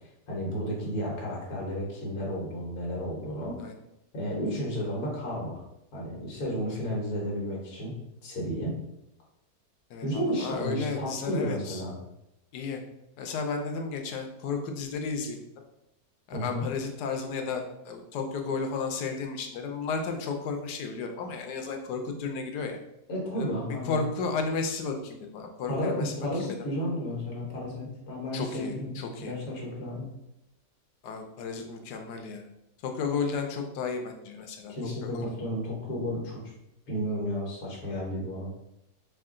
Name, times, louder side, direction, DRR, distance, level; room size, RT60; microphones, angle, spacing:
voice 1, 0.3-3.6 4.1-5.6 5.9-7.9 8.2-8.7 10.0-12.0 16.3-16.6 23.1-24.0 25.7-30.1 34.7-36.4 36.9-38.5, equal, 65° left, -3 dB, 1.6 m, -32 dB
voice 2, 9.9-11.8 12.5-12.8 13.2-15.4 16.3-22.8 23.3-23.5 23.8-26.6 28.3-29.3 31.0-32.4 32.8-35.3, left 4 dB, 85° left, 4 dB, 1.2 m, -33 dB
4.6 x 2.4 x 3.7 m, 0.85 s
omnidirectional pair, 1.7 m